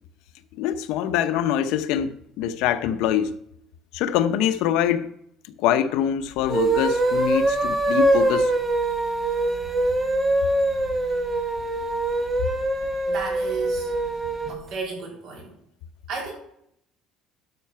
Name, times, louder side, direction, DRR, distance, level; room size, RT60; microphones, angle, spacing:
voice 1, 0.6-3.3 3.9-5.1 5.6-8.5, left 10 dB, 70° left, 0.8 m, -24 dB
sound 1, 6.4-14.6, right 2 dB, 15° right, 1.1 m, -23 dB
voice 2, 13.1-13.9 14.5-15.6 16.1-16.3, right 5 dB, 55° right, 3.7 m, -33 dB
12.0 x 5.8 x 5.6 m
cardioid pair, 165°, 0 cm